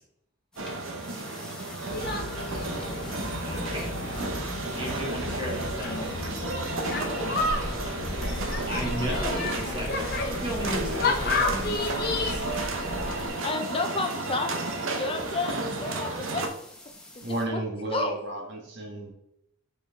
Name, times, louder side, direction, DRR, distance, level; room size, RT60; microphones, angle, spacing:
sound 1, 0.5-17.4, left 1 dB, 5° left, 0.8 m, -49 dB
sound 2, 0.6-16.5, right 2 dB, 75° right, 1.0 m, -33 dB
sound 3, 1.9-13.3, left 2 dB, 50° left, 0.9 m, -31 dB
voice 1, 3.4-3.9 4.8-6.0 8.7-12.4, equal, 25° right, -3 dB, 2.1 m, -35 dB
voice 2, 13.4-14.6 14.9-16.5 17.1-17.6 17.9-18.2, left 2 dB, 25° left, 5 dB, 0.5 m, -31 dB
voice 3, 17.2-19.1, right 2 dB, 55° right, 1 dB, 1.3 m, -32 dB
6.6 x 4.6 x 3.4 m, 0.77 s
head